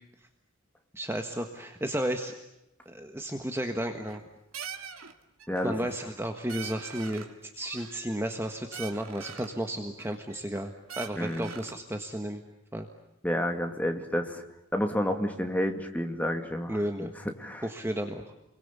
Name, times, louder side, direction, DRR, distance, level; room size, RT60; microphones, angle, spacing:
voice 1, 0.9-2.3 2.8-4.2 5.6-12.4 12.7-12.9 16.7-17.1 17.6-18.2, right 1 dB, 10° right, 4 dB, 1.5 m, -33 dB
sound 1, 3.9-4.3 4.5-5.1 5.4-5.8 6.1-6.2 6.5-7.3 7.6-8.4 8.7-9.6 10.0-10.6 10.9-11.8, right 7 dB, 80° right, 2.6 m, -43 dB
voice 2, 11.2-11.5 13.2-14.4 14.7-17.7, equal, 5° left, 4 dB, 2.4 m, -30 dB
30.0 x 23.0 x 8.4 m, 0.88 s
head